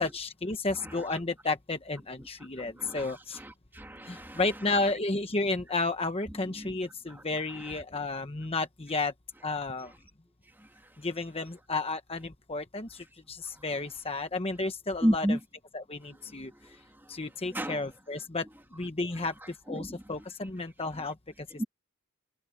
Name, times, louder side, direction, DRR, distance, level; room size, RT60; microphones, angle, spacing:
voice 1, 0.0-3.4 4.0-9.1 9.4-9.9 11.0-15.4 15.7-16.8 17.1-21.6, left 3 dB, 25° left, 1.1 m, -32 dB
voice 2, 2.6-4.4 6.3-6.7 7.1-7.2 7.5-7.8 10.6-10.7 15.0-15.4 16.3-16.8 17.5-17.9 19.7-20.1 21.6-21.7, equal, 10° right, 2.4 m, -33 dB
head